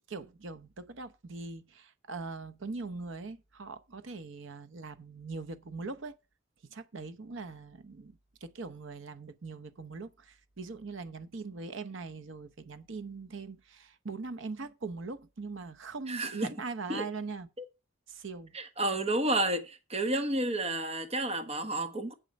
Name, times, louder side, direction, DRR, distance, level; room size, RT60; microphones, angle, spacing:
voice 1, 0.0-6.2 6.7-17.5 18.1-18.6, right 3 dB, 65° right, 0.8 m, -41 dB
voice 2, 16.1-16.5 16.9-17.0 17.6-17.7 18.5-22.1, right 1 dB, 30° right, 1.2 m, -31 dB
8.2 x 7.4 x 5.2 m
head